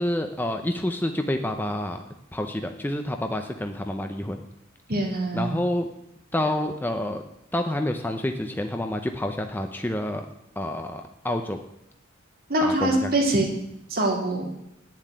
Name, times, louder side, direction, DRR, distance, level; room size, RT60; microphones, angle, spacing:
voice 1, 0.0-2.0 2.3-4.4 5.3-5.9 6.3-7.2 7.5-10.3 10.6-11.6 12.6-13.2, left 1 dB, 10° left, 5 dB, 0.6 m, -28 dB
voice 2, 4.9-5.6 12.5-13.5 13.9-14.5, right 1 dB, 45° right, 0 dB, 2.9 m, -23 dB
9.6 x 7.5 x 9.3 m, 0.82 s
head